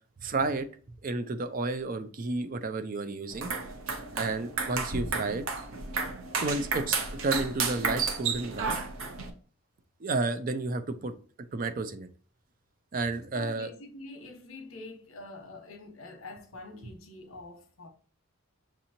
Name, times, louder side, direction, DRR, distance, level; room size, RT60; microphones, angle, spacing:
voice 1, 0.2-0.7 1.0-3.5 4.1-5.4 6.4-8.8 10.0-11.1 11.5-12.1 12.9-13.7, right 3 dB, 40° right, 0.4 m, -31 dB
sound 1, 3.3-9.3, right 4 dB, 80° right, 0.8 m, -32 dB
voice 2, 13.3-17.9, left 2 dB, 75° left, 1.0 m, -45 dB
6.0 x 2.9 x 2.7 m
head